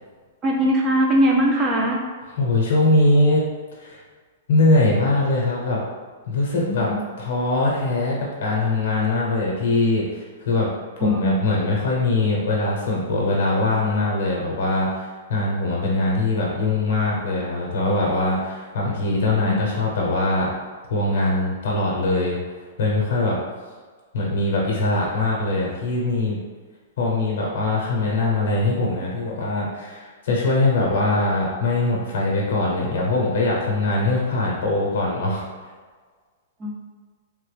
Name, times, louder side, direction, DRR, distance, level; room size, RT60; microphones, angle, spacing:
voice 1, 0.4-2.0 6.6-7.0 11.0-11.5 19.4-19.6 33.9-34.0 36.6-36.7, equal, 15° right, -2 dB, 0.4 m, -21 dB
voice 2, 2.4-3.4 3.8-4.0 4.5-5.8 6.2-6.9 7.2-10.7 11.0-20.5 20.9-22.4 22.8-23.4 24.1-26.4 27.0-35.4, left 2 dB, 55° left, -3 dB, 0.7 m, -22 dB
3.2 x 2.1 x 3.2 m, 1.5 s
hypercardioid pair, 180°, 0 cm